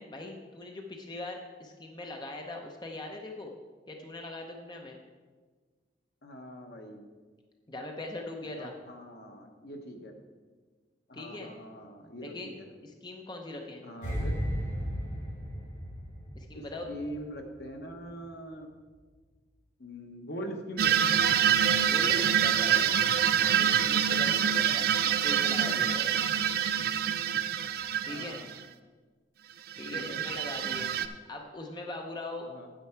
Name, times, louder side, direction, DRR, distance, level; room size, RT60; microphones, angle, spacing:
voice 1, 0.0-3.5 3.9-5.0 7.7-8.7 11.1-11.5 12.2-12.5 12.8-13.8 16.3-16.9 21.9-23.1 23.4-24.9 25.2-26.2 28.0-28.4 29.8-30.9 31.3-32.5, left 2 dB, 25° left, 2 dB, 0.7 m, -41 dB
voice 2, 6.2-7.0 8.6-10.1 11.1-12.7 13.8-14.4 16.5-18.7 19.8-21.2 28.1-28.5 29.9-30.2 32.4-32.7, equal, 65° left, 4 dB, 1.0 m, -42 dB
sound 1, 14.0-17.2 17.5-17.7, equal, 45° left, 2.5 m, -34 dB
sound 2, 20.8-28.6 29.7-31.1, right 9 dB, 55° right, 0.4 m, -26 dB
9.2 x 7.7 x 4.5 m, 1.4 s
head